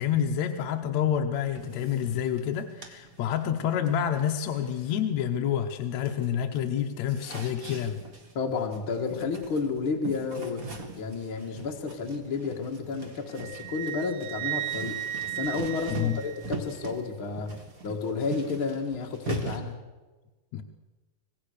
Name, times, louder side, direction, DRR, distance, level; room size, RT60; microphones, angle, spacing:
voice 1, 0.0-8.0 15.9-16.2 20.5-20.6, left 9 dB, 70° left, 5 dB, 1.8 m, -28 dB
sound 1, 1.5-5.7 5.9-19.6, right 3 dB, 30° right, 2.1 m, -41 dB
voice 2, 8.3-10.7 11.0-15.0 15.3-17.5 17.8-19.8, left 4 dB, 40° left, 2 dB, 2.1 m, -31 dB
Wind instrument woodwind instrument, 13.3-16.8, right 14 dB, 85° right, 2.8 m, -35 dB
25.5 x 19.0 x 6.6 m, 1.2 s
omnidirectional pair, 4.2 m